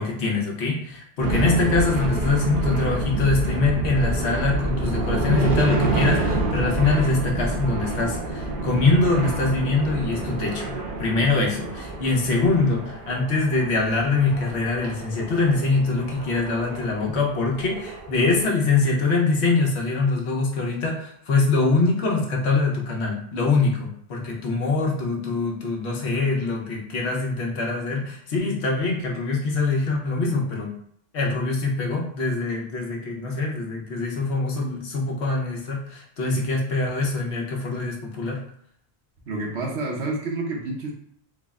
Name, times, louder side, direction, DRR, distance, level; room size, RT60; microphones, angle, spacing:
voice 1, 0.0-30.7 31.1-38.4, left 3 dB, 85° left, -1 dB, 1.1 m, -23 dB
sound 1, 1.2-18.4, right 2 dB, 60° right, 0.7 m, -28 dB
voice 2, 39.3-40.9, right 2 dB, 85° right, -1 dB, 1.2 m, -28 dB
3.8 x 2.1 x 3.5 m, 0.67 s
omnidirectional pair, 1.1 m